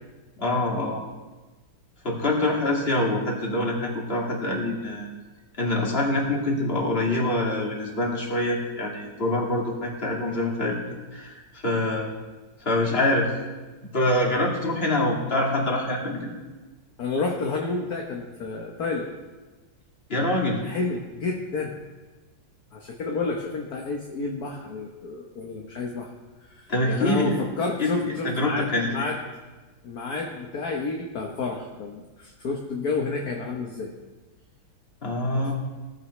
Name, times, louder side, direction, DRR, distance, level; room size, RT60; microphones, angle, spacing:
voice 1, 0.4-1.0 2.0-5.1 5.6-10.9 11.1-11.3 11.6-12.1 12.6-13.3 13.9-16.3 20.1-20.6 26.7-27.4 27.8-29.1 35.0-35.5, left 1 dB, 30° left, -2 dB, 2.6 m, -25 dB
voice 2, 17.0-19.1 20.5-21.7 22.7-26.1 26.4-29.2 29.8-33.9 35.4-35.5, left 3 dB, 60° left, 0 dB, 1.6 m, -30 dB
17.5 x 14.5 x 3.2 m, 1.2 s
omnidirectional pair, 2.0 m